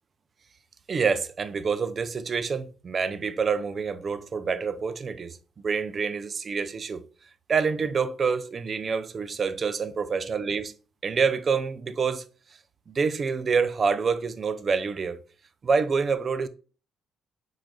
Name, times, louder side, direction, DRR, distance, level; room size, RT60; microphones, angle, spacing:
voice 1, 0.9-5.4 5.6-7.0 7.5-10.7 11.0-12.2 12.9-15.2 15.6-16.5, right 5 dB, 45° right, 0.4 m, -27 dB
5.9 x 3.8 x 2.2 m
cardioid pair, 90°, 0 cm